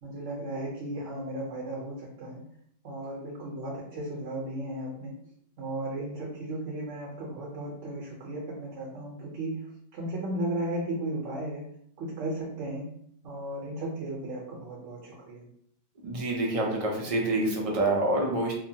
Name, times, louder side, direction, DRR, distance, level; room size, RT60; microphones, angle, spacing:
voice 1, 0.0-2.4 2.8-5.1 5.6-9.6 9.9-11.6 12.0-12.9 13.2-15.4, right 1 dB, 75° right, -3 dB, 1.0 m, -35 dB
voice 2, 16.0-18.5, right 2 dB, 45° right, -1 dB, 0.5 m, -27 dB
2.8 x 2.2 x 2.7 m, 0.68 s
omnidirectional pair, 1.3 m